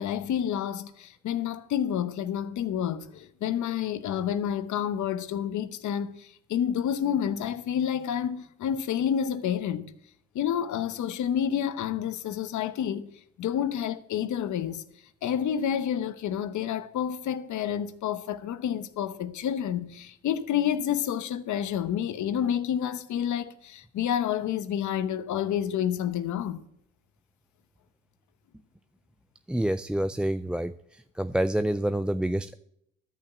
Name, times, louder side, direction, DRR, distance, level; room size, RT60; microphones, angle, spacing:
voice 1, 0.0-9.9 10.3-13.1 13.4-14.8 15.2-26.6, left 9 dB, 75° left, 1.0 m, -29 dB
voice 2, 29.5-30.7 31.2-32.5, right 1 dB, 5° right, 0.3 m, -27 dB
12.5 x 5.7 x 8.1 m
cardioid pair, 90°, 30 cm